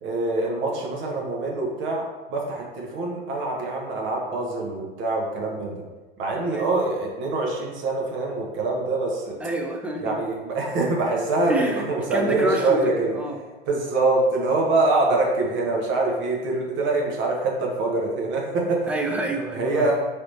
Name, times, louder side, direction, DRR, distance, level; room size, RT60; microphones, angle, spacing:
voice 1, 0.0-5.8 6.2-9.4 10.0-13.2 13.7-18.9 19.5-19.9, right 2 dB, 40° right, -1 dB, 0.8 m, -24 dB
voice 2, 9.4-10.2 11.5-13.4 18.9-19.9, right 1 dB, 5° right, 1 dB, 0.3 m, -28 dB
3.3 x 2.9 x 2.7 m, 1.2 s
figure-of-eight pair, 75°, 30 cm